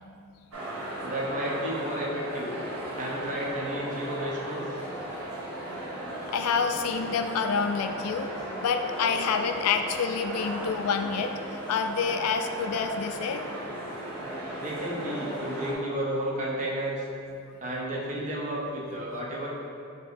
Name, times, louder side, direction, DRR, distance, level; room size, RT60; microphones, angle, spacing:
sound 1, 0.5-15.7, right 1 dB, 80° right, 0.9 m, -36 dB
voice 1, 1.0-2.6 3.0-4.6 14.6-17.0 17.6-19.5, right 1 dB, 35° right, -4 dB, 0.7 m, -32 dB
voice 2, 6.2-8.3 8.6-13.4, left 5 dB, 90° left, 7 dB, 0.3 m, -28 dB
5.4 x 2.8 x 2.6 m, 2.6 s
head